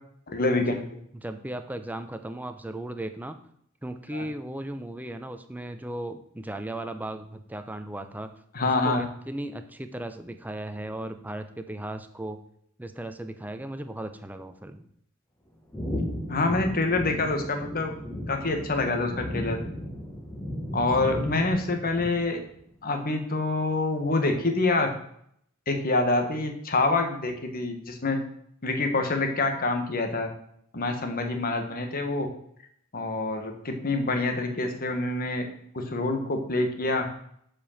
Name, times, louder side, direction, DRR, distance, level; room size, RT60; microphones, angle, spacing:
voice 1, 0.3-0.7 4.1-4.2 8.5-9.0 16.3-17.9 18.3-19.6 20.7-22.4 22.8-24.9 25.7-28.2 28.6-30.3 30.7-32.3 32.9-35.5 35.7-37.0, left 2 dB, 45° left, 5 dB, 1.3 m, -26 dB
voice 2, 1.1-3.4 3.8-8.3 8.8-12.4 12.8-14.9, right 1 dB, 10° right, 8 dB, 0.6 m, -36 dB
sound 1, 15.7-22.5, equal, 10° left, 1.4 m, -35 dB
7.6 x 5.1 x 7.2 m, 0.69 s
head